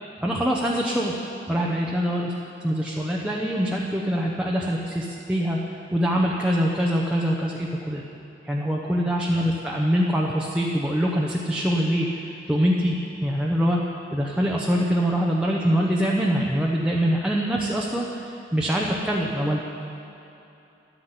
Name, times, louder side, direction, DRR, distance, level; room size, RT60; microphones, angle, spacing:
voice 1, 0.2-1.1 1.5-2.3 2.6-8.0 8.4-13.8 14.1-19.6, equal, 5° right, -3 dB, 0.9 m, -24 dB
12.0 x 9.9 x 8.1 m, 2.8 s
head